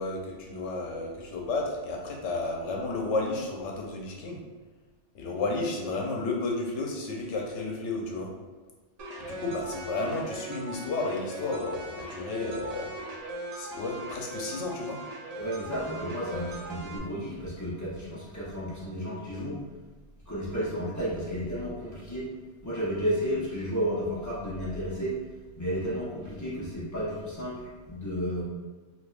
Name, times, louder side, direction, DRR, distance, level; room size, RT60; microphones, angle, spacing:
voice 1, 0.0-4.4 5.1-8.3 9.2-12.9 13.5-15.0, left 3 dB, 80° left, 0 dB, 1.0 m, -32 dB
sound 1, 9.0-17.0, right 2 dB, 60° right, 0.4 m, -40 dB
voice 2, 15.4-19.6 20.3-22.3 22.6-25.2 25.6-28.4, equal, 20° left, -8 dB, 0.7 m, -32 dB
3.4 x 2.9 x 2.4 m, 1.3 s
omnidirectional pair, 1.2 m